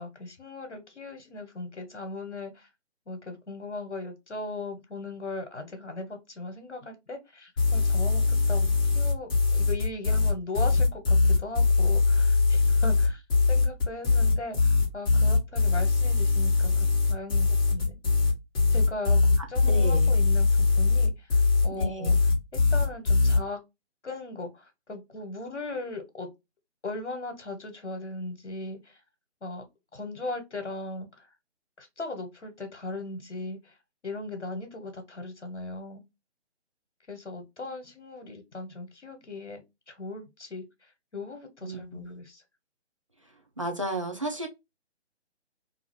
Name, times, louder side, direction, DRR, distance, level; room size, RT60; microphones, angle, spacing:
voice 1, 0.0-2.7 3.1-18.0 18.7-21.4 21.6-22.3 22.7-23.6 24.0-26.3 26.8-29.0 29.4-29.6 29.9-31.3 31.8-33.8 34.0-36.0 37.1-39.6 39.9-42.4, left 2 dB, 80° left, 1.0 m, -38 dB
sound 1, 7.6-23.4, left 4 dB, 20° left, 0.8 m, -22 dB
voice 2, 19.6-20.1 21.7-22.2 41.6-42.0 43.6-44.5, right 1 dB, 30° right, 0.4 m, -33 dB
2.6 x 2.5 x 3.1 m
figure-of-eight pair, 140°, 35 cm